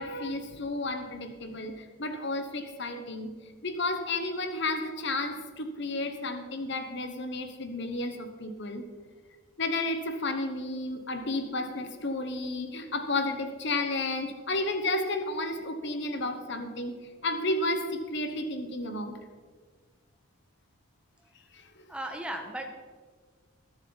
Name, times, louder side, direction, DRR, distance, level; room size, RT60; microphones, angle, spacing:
voice 1, 0.0-3.3 3.6-8.8 9.6-16.9 17.2-19.2 21.5-21.7, left 2 dB, 55° left, 7 dB, 1.1 m, -32 dB
voice 2, 21.9-22.7, right 1 dB, 5° right, 3 dB, 1.2 m, -36 dB
20.0 x 7.2 x 4.0 m, 1.5 s
head